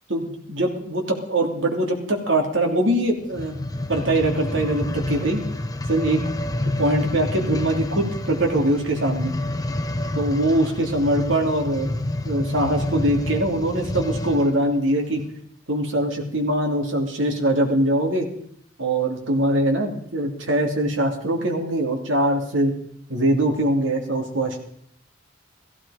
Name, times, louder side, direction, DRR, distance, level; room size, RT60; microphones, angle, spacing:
voice 1, 0.1-3.6 3.9-5.4 5.9-6.2 6.8-9.3 10.1-11.9 12.2-15.2 15.7-18.3 18.8-22.7 23.1-24.6, right 1 dB, 70° right, 2 dB, 3.0 m, -22 dB
sound 1, 3.2-14.6 15.2-15.3, left 1 dB, 20° left, 0.7 m, -28 dB
15.5 x 15.5 x 5.0 m, 0.66 s
head